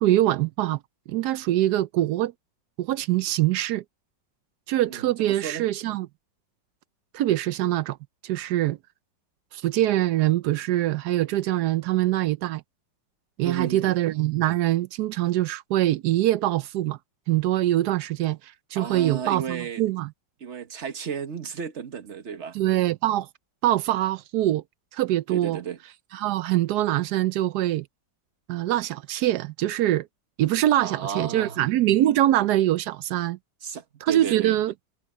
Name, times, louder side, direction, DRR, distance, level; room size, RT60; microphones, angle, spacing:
voice 1, 0.0-0.8 1.1-2.3 2.8-3.8 4.7-6.1 7.1-8.0 8.2-8.8 9.5-12.6 13.4-17.0 17.3-20.1 22.5-23.3 23.6-24.6 24.9-25.6 26.1-27.9 28.5-30.1 30.4-33.4 34.0-34.7, right 14 dB, 75° right, 1.0 m, -23 dB
voice 2, 4.9-5.7 13.4-14.0 18.7-19.8 20.4-22.6 25.3-25.8 30.8-31.7 33.6-34.6, right 7 dB, 40° right, 1.4 m, -34 dB
omnidirectional pair, 2.0 m